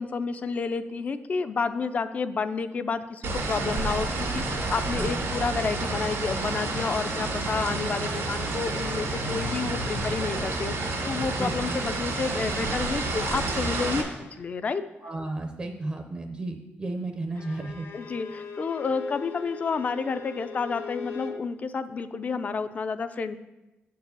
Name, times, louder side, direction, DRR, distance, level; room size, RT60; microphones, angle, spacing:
voice 1, 0.0-14.8 17.9-23.4, left 5 dB, 35° left, 11 dB, 0.4 m, -30 dB
sound 1, 3.2-14.0, right 2 dB, 85° right, 2.1 m, -29 dB
voice 2, 4.9-5.3 11.3-11.8 15.0-17.9, right 2 dB, 25° right, 4 dB, 0.5 m, -33 dB
Bowed string instrument, 17.3-21.4, left 6 dB, 70° left, 0.8 m, -40 dB
7.6 x 4.7 x 6.8 m, 1.0 s
wide cardioid pair, 175°, 4 cm